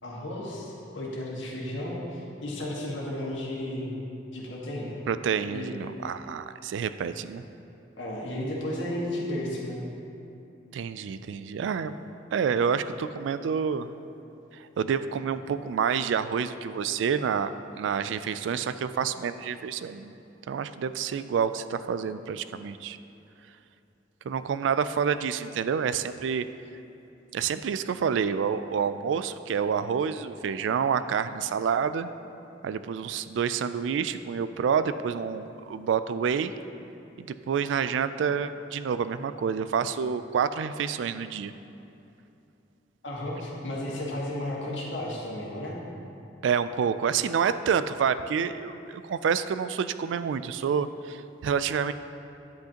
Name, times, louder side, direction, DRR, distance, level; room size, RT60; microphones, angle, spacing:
voice 1, 0.0-3.9 4.3-5.0 5.5-5.7 8.0-9.8 43.0-45.8, left 1 dB, 85° left, -4 dB, 1.7 m, -33 dB
voice 2, 5.1-7.4 10.7-12.0 12.3-13.9 14.5-20.1 20.5-23.0 24.2-26.4 27.3-32.1 32.6-36.5 37.2-41.5 46.4-51.9, right 7 dB, 75° right, 12 dB, 0.3 m, -28 dB
10.5 x 8.0 x 2.9 m, 2.8 s
head